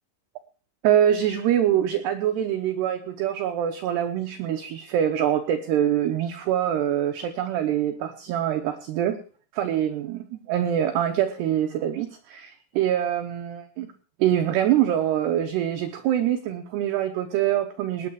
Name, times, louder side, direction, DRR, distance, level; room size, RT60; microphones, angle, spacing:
voice 1, 0.8-9.2 9.5-13.9 14.2-18.1, right 10 dB, 75° right, 5 dB, 2.6 m, -24 dB
19.0 x 8.6 x 4.8 m, 0.41 s
omnidirectional pair, 5.9 m